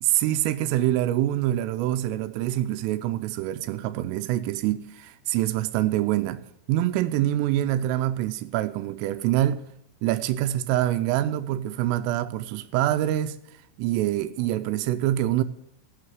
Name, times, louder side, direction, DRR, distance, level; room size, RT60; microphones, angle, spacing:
voice 1, 0.0-6.4 6.7-9.6 10.0-13.4 13.8-15.4, right 13 dB, 90° right, 3.3 m, -25 dB
16.0 x 5.8 x 7.9 m
omnidirectional pair, 5.8 m